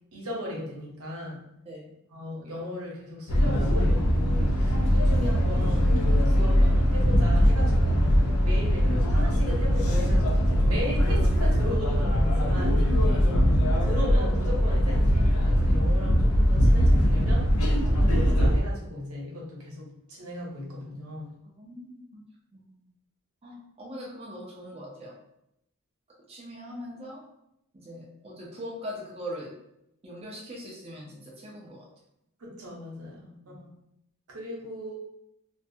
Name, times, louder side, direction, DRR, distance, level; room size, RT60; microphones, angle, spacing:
voice 1, 0.1-1.4 2.1-8.0 8.4-13.0 13.6-17.5 17.8-21.4 32.4-33.7 34.3-34.9, left 1 dB, 80° right, -2 dB, 0.8 m, -37 dB
sound 1, 3.3-18.6, equal, 75° left, 0.5 m, -21 dB
voice 2, 13.0-13.4 21.6-22.2 22.5-22.9 23.4-25.2 26.3-27.2 27.7-29.5 30.0-31.9 33.4-33.6, equal, 30° right, -4 dB, 0.5 m, -41 dB
2.5 x 2.2 x 2.6 m, 0.79 s
head